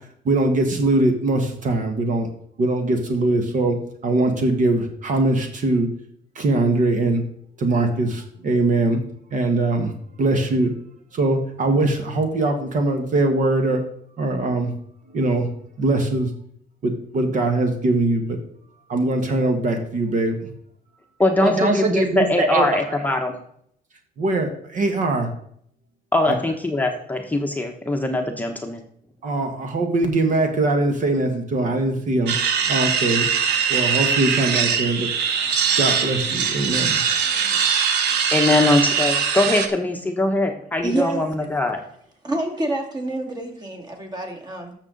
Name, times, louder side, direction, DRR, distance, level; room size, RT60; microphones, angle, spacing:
voice 1, 0.2-2.3 2.6-5.9 6.3-7.2 7.6-9.0 9.3-9.9 10.2-10.7 11.1-13.8 14.2-14.7 15.1-15.5 15.8-16.3 16.8-18.4 18.9-20.5 21.4-23.0 24.2-25.3 26.3-26.4 29.2-32.3 32.6-33.3 33.7-35.1 35.4-37.7, right 2 dB, 50° right, 5 dB, 1.6 m, -22 dB
voice 2, 21.2-23.3 26.1-28.8 38.3-41.8, left 2 dB, 10° left, 2 dB, 1.0 m, -21 dB
sound 1, 32.3-39.7, right 7 dB, 80° right, 1.1 m, -21 dB
voice 3, 40.8-41.2 42.2-44.7, right 2 dB, 25° right, 3 dB, 2.2 m, -27 dB
13.0 x 6.7 x 4.0 m, 0.67 s
cardioid pair, 110°, 17 cm